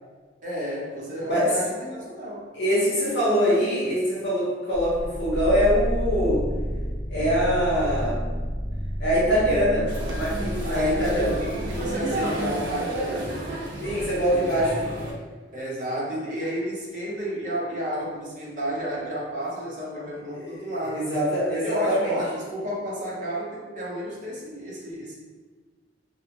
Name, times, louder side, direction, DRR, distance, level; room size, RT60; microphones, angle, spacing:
voice 1, 0.4-2.5 10.6-13.4 14.3-14.5 15.5-21.3 21.6-25.1, equal, 45° right, -6 dB, 0.7 m, -31 dB
voice 2, 2.5-6.4 7.1-8.2 9.0-11.4 13.8-14.7 20.3-22.1, equal, 75° left, -8 dB, 1.0 m, -23 dB
sound 1, 4.7-12.6, equal, 20° left, 0.5 m, -31 dB
sound 2, 9.9-15.1, right 1 dB, 85° right, 0.5 m, -31 dB
2.4 x 2.3 x 2.8 m, 1.4 s
head